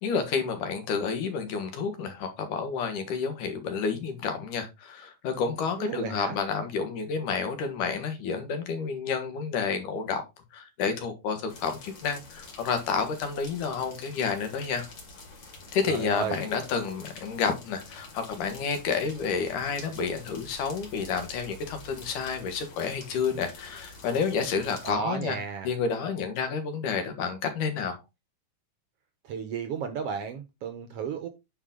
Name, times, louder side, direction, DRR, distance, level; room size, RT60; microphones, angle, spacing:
voice 1, 0.0-10.2 10.5-14.8 15.7-25.4 25.6-28.0, left 5 dB, 85° left, 3.0 m, -30 dB
voice 2, 5.8-6.4 15.9-16.4 24.8-25.7 29.2-31.3, right 6 dB, 70° right, 1.5 m, -33 dB
sound 1, 11.5-24.9, left 3 dB, 55° left, 3.4 m, -47 dB
8.8 x 4.7 x 3.7 m
omnidirectional pair, 3.5 m